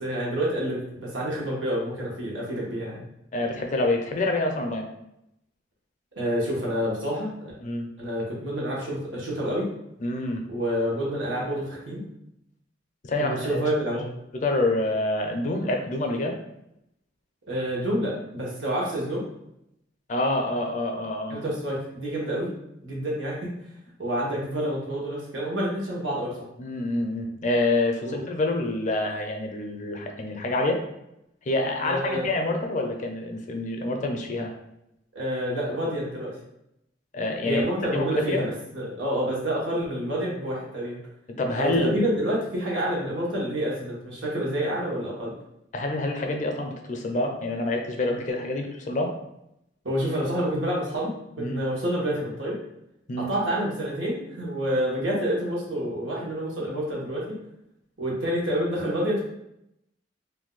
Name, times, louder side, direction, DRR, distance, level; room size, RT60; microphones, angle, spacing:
voice 1, 0.0-3.0 6.2-7.3 8.0-9.7 10.5-12.0 13.2-14.1 17.5-19.2 21.3-22.5 22.8-23.5 24.0-26.4 28.0-28.2 31.8-32.2 35.1-36.4 37.4-41.0 41.6-45.3 49.8-51.1 51.4-52.6 53.2-57.4 58.0-59.2, equal, 90° right, -4 dB, 1.1 m, -28 dB
voice 2, 3.3-4.9 7.6-7.9 10.0-10.4 13.0-13.6 14.3-16.4 20.1-21.4 26.6-30.8 31.5-34.5 37.1-37.6 37.9-38.5 41.4-42.0 45.7-49.1 51.4-51.6 53.1-53.3, left 2 dB, 40° left, 3 dB, 0.4 m, -27 dB
2.6 x 2.2 x 3.8 m, 0.81 s
head